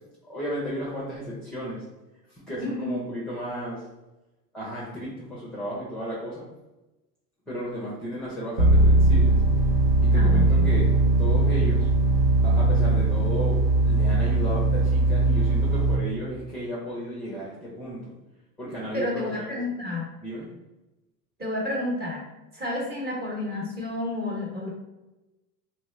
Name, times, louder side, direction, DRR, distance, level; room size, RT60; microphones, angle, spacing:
voice 1, 0.3-1.8 2.3-3.8 4.5-6.5 7.5-9.4 10.0-11.9 12.4-18.1 18.6-19.2 20.2-20.5, equal, ahead, -6 dB, 0.6 m, -34 dB
voice 2, 2.6-3.0 10.1-10.7 18.9-20.1 21.4-22.2 22.5-24.7, left 2 dB, 20° right, -3 dB, 1.1 m, -30 dB
sound 1, 8.6-16.0, right 2 dB, 45° right, 0.9 m, -20 dB
3.2 x 2.3 x 3.1 m, 1.0 s
hypercardioid pair, 105°, 49 cm